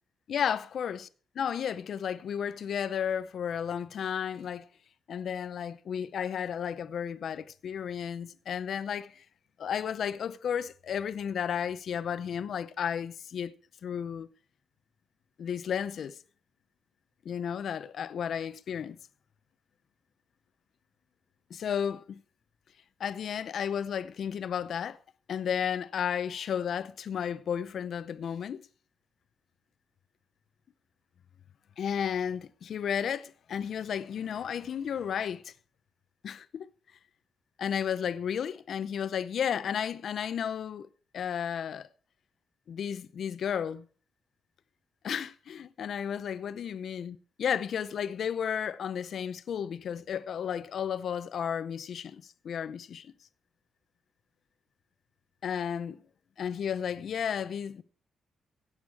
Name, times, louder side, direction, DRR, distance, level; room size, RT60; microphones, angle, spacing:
voice 1, 0.3-1.1 1.4-4.7 5.1-9.2 9.6-13.5 13.8-14.3 15.4-16.2 17.2-19.0 21.5-22.2 23.0-25.0 25.3-28.7 31.8-35.5 36.2-36.7 37.6-40.9 41.1-41.9 42.7-43.8 45.0-53.1 55.4-56.0 56.4-57.8, left 8 dB, 55° left, 0.6 m, -33 dB
16.0 x 8.0 x 4.7 m
cardioid pair, 145°, 0 cm